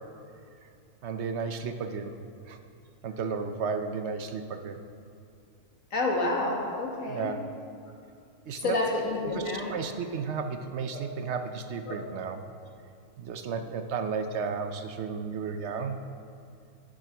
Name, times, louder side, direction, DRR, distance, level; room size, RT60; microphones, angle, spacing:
voice 1, 1.0-2.1 2.5-2.6 3.0-4.8 7.1-7.4 8.5-8.8 9.3-12.4 13.2-16.0, right 5 dB, 65° right, 8 dB, 0.9 m, -33 dB
voice 2, 5.9-7.3 8.6-9.8 10.9-11.0 11.9-12.0, left 2 dB, 80° left, -1 dB, 2.1 m, -29 dB
10.5 x 8.9 x 6.0 m, 2.4 s
omnidirectional pair, 1.4 m